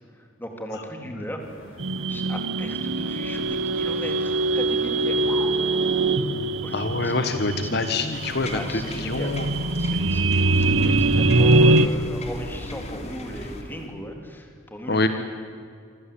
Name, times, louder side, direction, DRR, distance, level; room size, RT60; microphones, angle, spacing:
voice 1, 0.1-1.4 2.1-5.6 6.6-7.1 7.6-7.8 8.5-9.3 9.8-15.1, equal, 10° left, 3 dB, 3.7 m, -37 dB
sound 1, 1.4-13.9, equal, 85° left, 6.8 m, -45 dB
sound 2, 1.8-11.9, right 2 dB, 75° right, 1.2 m, -22 dB
voice 2, 6.7-9.5 14.9-15.1, left 3 dB, 55° left, 8 dB, 1.5 m, -25 dB
sound 3, 8.1-13.6, left 1 dB, 35° left, 3.2 m, -36 dB
27.5 x 25.0 x 8.7 m, 2.3 s
head